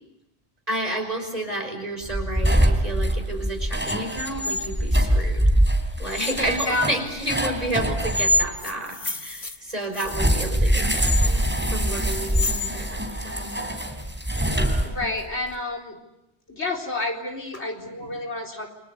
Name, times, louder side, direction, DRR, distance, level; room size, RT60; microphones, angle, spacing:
voice 1, 0.7-5.5 6.0-13.6 17.5-17.6 18.0-18.1, right 1 dB, 35° right, 4 dB, 5.8 m, -31 dB
sound 1, 2.0-8.5 10.1-15.3, equal, 10° right, 3.3 m, -23 dB
voice 2, 6.3-6.9 14.8-16.0 16.5-18.7, left 2 dB, 85° left, 4 dB, 4.4 m, -29 dB
sound 2, 8.3-10.4 11.0-12.7, left 3 dB, 45° left, 2.1 m, -37 dB
29.5 x 24.5 x 8.3 m, 0.91 s
omnidirectional pair, 1.1 m